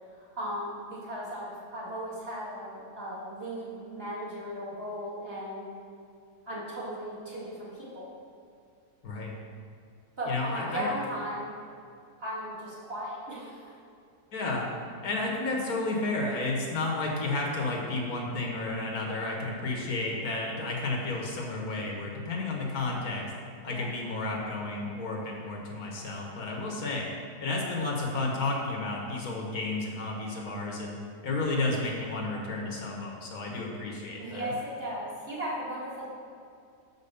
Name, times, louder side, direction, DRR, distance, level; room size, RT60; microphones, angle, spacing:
voice 1, 0.1-5.7 6.5-8.1 10.2-11.5 12.2-13.7 23.6-23.8 34.2-36.1, equal, 35° right, -8 dB, 2.3 m, -36 dB
voice 2, 9.0-9.3 10.3-10.9 14.3-14.7 15.0-23.3 23.6-27.1 27.4-30.9 31.2-34.5, left 2 dB, 65° left, -1 dB, 1.5 m, -32 dB
6.2 x 5.4 x 6.7 m, 2.4 s
omnidirectional pair, 1.7 m